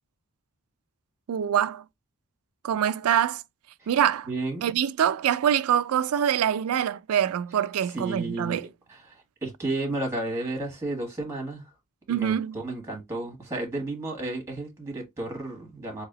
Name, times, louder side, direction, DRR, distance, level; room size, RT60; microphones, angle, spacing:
voice 1, 1.3-1.8 2.6-3.4 3.9-4.3 4.6-8.7 12.1-12.6, right 9 dB, 85° right, 0.4 m, -24 dB
voice 2, 4.2-4.6 7.8-8.6 8.9-11.7 12.1-16.0, right 2 dB, 15° right, 1.5 m, -32 dB
4.0 x 2.9 x 2.8 m
head